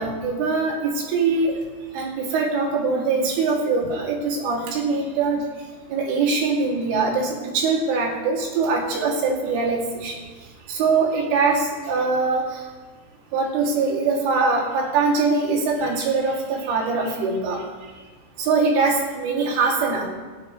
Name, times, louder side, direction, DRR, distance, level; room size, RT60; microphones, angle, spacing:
voice 1, 0.0-1.6 1.9-5.4 5.9-10.2 10.7-12.5 13.3-17.6 18.4-20.1, right 4 dB, 85° right, -2 dB, 5.5 m, -22 dB
29.0 x 13.5 x 3.3 m, 1.4 s
omnidirectional pair, 5.5 m